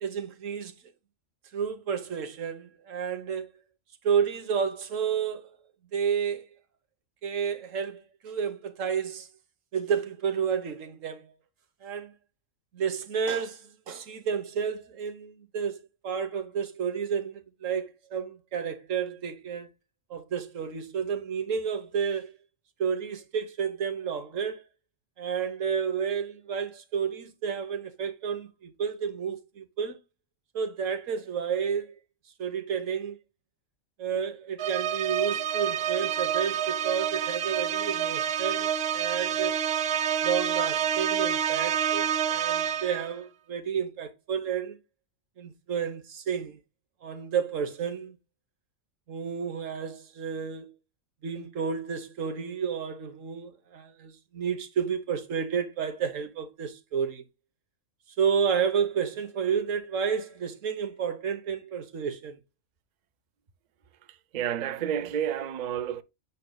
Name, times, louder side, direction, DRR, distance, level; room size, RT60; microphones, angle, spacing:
voice 1, 0.0-0.7 1.5-3.5 4.0-5.5 5.9-6.5 7.2-9.3 9.7-11.3 11.8-12.1 12.7-19.7 20.1-22.3 22.8-24.6 25.2-30.0 30.5-32.0 32.4-33.2 34.0-39.5 40.2-44.8 45.4-46.6 47.0-48.2 49.1-50.7 51.2-57.2 58.2-62.4, right 7 dB, 90° right, 1.5 m, -31 dB
sound 1, 34.6-43.1, right 9 dB, 75° right, 1.0 m, -28 dB
voice 2, 64.1-66.0, right 9 dB, 45° right, 0.6 m, -30 dB
8.3 x 5.5 x 2.2 m
omnidirectional pair, 1.3 m